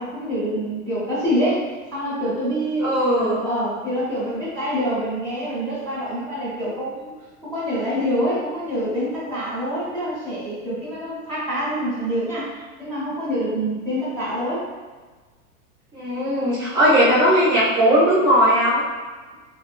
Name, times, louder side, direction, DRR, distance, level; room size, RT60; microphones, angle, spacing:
voice 1, 0.0-1.6 1.9-7.1 7.4-12.5 12.8-14.6, equal, 10° left, -13 dB, 1.0 m, -26 dB
voice 2, 2.8-3.4 15.9-18.8, equal, 10° right, -17 dB, 0.7 m, -18 dB
2.9 x 2.8 x 2.5 m, 1.4 s
supercardioid pair, 165°, 42 cm